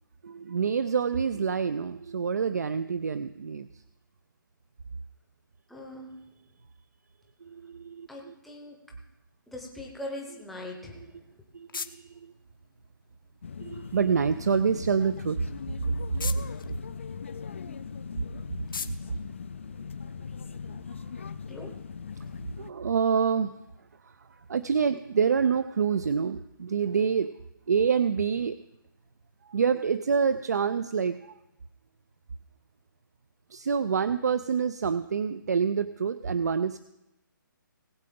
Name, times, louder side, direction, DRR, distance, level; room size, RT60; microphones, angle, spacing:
voice 1, 0.2-3.8 7.4-8.3 10.8-11.1 11.5-12.3 13.6-15.4 16.1-16.4 22.6-23.5 24.0-27.3 27.7-28.6 29.4-31.3 33.5-36.8, right 6 dB, 50° right, 13 dB, 0.5 m, -27 dB
voice 2, 5.7-6.1 8.1-8.8 9.5-11.1 17.5-17.8 21.5-21.7, left 1 dB, ahead, -1 dB, 0.8 m, -41 dB
sound 1, 10.9-20.4, left 5 dB, 75° left, 0.9 m, -45 dB
sound 2, 13.4-22.7, left 6 dB, 35° left, 0.4 m, -40 dB
19.5 x 7.6 x 3.8 m, 0.91 s
hypercardioid pair, 175°, 11 cm